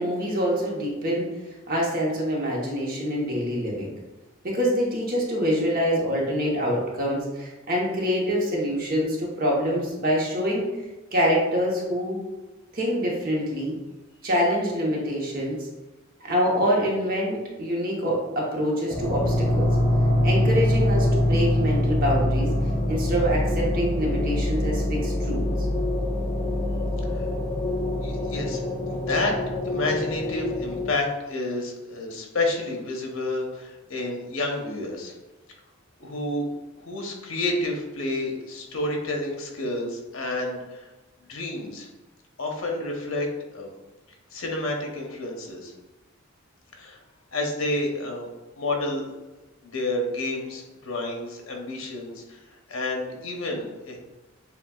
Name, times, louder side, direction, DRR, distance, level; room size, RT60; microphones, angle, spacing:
voice 1, 0.0-3.9 4.4-10.7 11.1-12.2 12.7-13.8 14.2-15.6 16.2-19.7 20.2-22.5 22.9-25.7, equal, 45° right, -3 dB, 1.0 m, -25 dB
sound 1, 18.9-30.9, left 1 dB, 20° left, 0.6 m, -24 dB
voice 2, 28.0-29.4 29.6-35.1 36.0-36.5 36.8-40.9 41.2-41.9 42.4-43.3 43.5-43.8 44.3-45.7 46.7-47.0 47.3-48.3 48.6-49.1 49.6-52.4 52.7-54.0, left 2 dB, 80° left, 1 dB, 0.9 m, -30 dB
6.8 x 2.4 x 2.3 m, 1.1 s
head